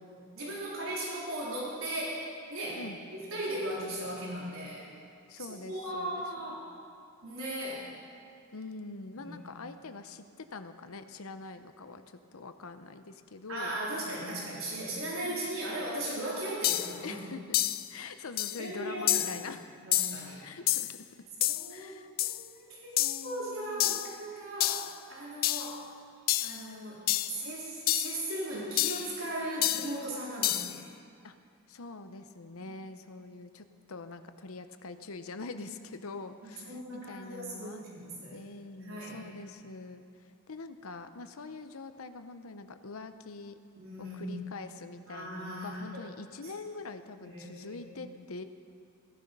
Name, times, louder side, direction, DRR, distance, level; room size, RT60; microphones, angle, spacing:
voice 1, 0.1-2.8 3.1-4.9 5.5-6.7 7.2-7.9 9.1-9.4 13.5-17.2 18.6-19.3 19.8-20.5 21.5-21.9 22.2-23.0 23.2-24.8 25.1-25.8 26.4-27.0 27.3-30.8 32.6-32.7 35.6-35.7 36.4-38.4 38.8-39.2 43.8-44.3 45.1-45.9 46.4-46.5 47.2-47.9, right 1 dB, 75° right, -6 dB, 3.7 m, -37 dB
voice 2, 5.3-6.6 8.5-14.4 15.2-15.4 17.0-17.6 17.9-19.6 20.4-21.0 21.7-22.1 23.0-24.0 31.2-31.3 31.7-37.8 38.3-43.5 44.0-48.4, left 3 dB, 85° left, 10 dB, 0.8 m, -44 dB
sound 1, 16.1-16.2 16.6-17.0 17.5-17.9 18.4-18.6 19.1-19.4 19.9-20.2 20.7-21.0 21.4-21.7 22.2-22.4 23.0-23.3 23.8-24.1 24.6-24.9 25.4-25.7 26.3-26.6 27.1-27.4 27.9-28.2 28.8-29.1 29.6-30.0 30.4-30.8, left 15 dB, 45° left, 0.3 m, -29 dB
16.0 x 11.5 x 5.4 m, 2.3 s
head